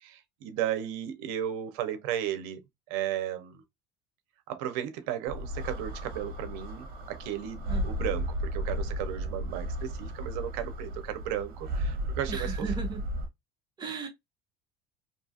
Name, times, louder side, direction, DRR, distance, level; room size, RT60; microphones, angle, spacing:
voice 1, 0.0-2.6 2.9-3.6 4.5-12.5, right 11 dB, 85° right, 0.6 m, -34 dB
sound 1, 5.3-13.3, equal, 50° right, 1.0 m, -34 dB
voice 2, 12.3-13.0 13.8-14.1, right 4 dB, 20° right, 0.9 m, -35 dB
2.7 x 2.3 x 2.6 m
cardioid pair, 150°, 20 cm